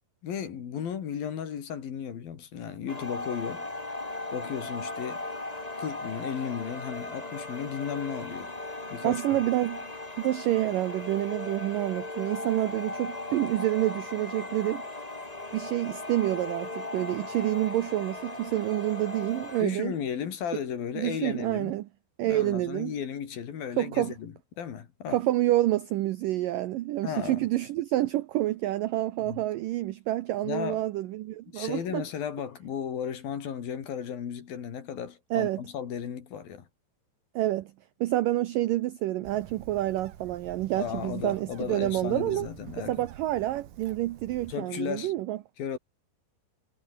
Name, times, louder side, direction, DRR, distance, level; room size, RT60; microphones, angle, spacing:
voice 1, 0.2-3.7 4.3-5.2 5.8-8.6 8.9-9.4 19.6-21.8 22.2-25.2 27.0-27.5 29.2-29.4 30.4-30.8 31.5-36.7 40.8-43.1 44.5-45.1 45.6-45.8, left 8 dB, 60° left, 4.2 m, -35 dB
sound 1, 2.9-19.6, left 2 dB, 20° left, 1.1 m, -38 dB
voice 2, 9.0-9.8 10.2-14.8 15.5-19.9 21.0-21.9 22.2-22.9 23.8-24.1 25.1-32.0 35.3-35.6 37.4-37.7 38.0-42.5 42.8-45.4, right 15 dB, 85° right, 1.9 m, -28 dB
Bird, 39.2-44.5, right 11 dB, 60° right, 3.3 m, -48 dB
omnidirectional pair, 5.0 m